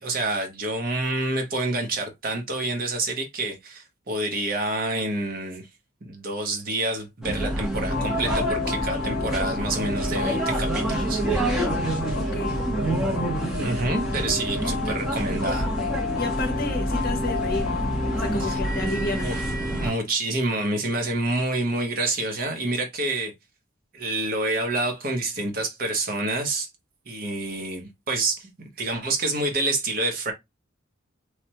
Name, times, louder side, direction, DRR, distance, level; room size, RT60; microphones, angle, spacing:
voice 1, 0.0-5.7 6.0-11.2 13.6-15.7 18.4-18.6 19.2-19.4 19.7-23.3 23.9-26.7 27.1-28.5 28.8-30.3, right 2 dB, 45° right, 0.8 m, -28 dB
sound 1, 7.2-19.9, right 1 dB, ahead, 0.7 m, -27 dB
sound 2, 7.8-18.7, left 6 dB, 70° left, 0.5 m, -33 dB
voice 2, 12.1-12.6 16.1-19.3, left 2 dB, 45° left, 0.8 m, -31 dB
3.2 x 2.1 x 2.8 m
head